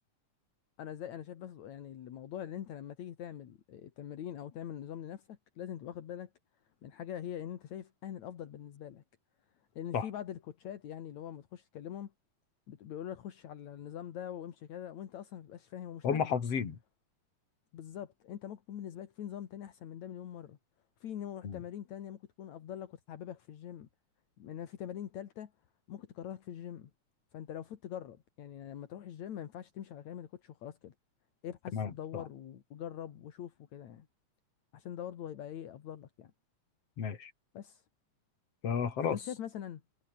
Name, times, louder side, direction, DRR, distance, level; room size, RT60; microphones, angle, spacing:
voice 1, 0.8-6.3 6.8-9.0 9.8-12.1 12.7-16.4 17.7-20.6 21.0-23.9 24.4-25.5 25.9-26.9 27.3-30.9 31.4-34.1 34.7-36.3 37.5-37.8 39.0-39.8, left 10 dB, 70° left, 3.0 m, -43 dB
voice 2, 16.0-16.8 21.4-21.6 31.7-32.2 37.0-37.3 38.6-39.2, left 6 dB, 55° left, 3.9 m, -32 dB
omnidirectional pair, 3.3 m